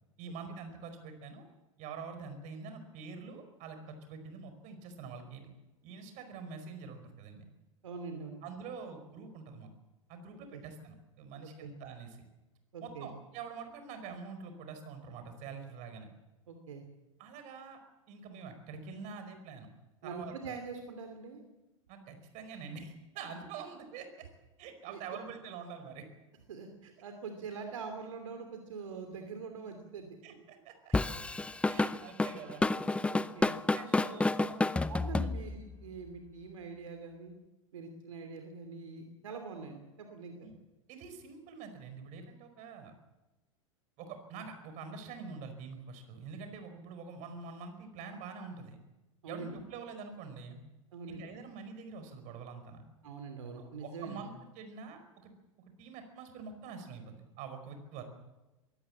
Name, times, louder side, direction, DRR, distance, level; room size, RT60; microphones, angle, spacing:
voice 1, 0.2-1.4 1.8-5.5 5.8-7.4 8.4-9.7 10.1-12.2 12.8-16.1 17.2-17.8 18.1-19.7 20.0-20.6 21.9-24.2 24.6-26.0 30.2-30.9 31.6-32.6 33.7-34.7 35.2-35.4 40.4-40.5 40.9-42.9 44.0-48.8 49.3-50.6 51.1-52.8 53.8-55.3 55.8-58.0, right 5 dB, 45° right, 8 dB, 4.9 m, -46 dB
voice 2, 7.8-8.4 10.5-10.6 11.6-11.7 12.7-13.1 16.5-16.8 20.0-21.4 24.9-25.0 26.5-30.2 33.1-33.6 34.9-37.3 37.7-40.5 49.2-49.6 50.9-51.3 53.0-54.2, right 4 dB, 70° right, 5 dB, 2.9 m, -44 dB
Drum kit / Drum, 30.9-35.8, left 2 dB, 5° left, 0.6 m, -29 dB
22.5 x 17.0 x 7.4 m, 1.1 s
figure-of-eight pair, 90°, 17 cm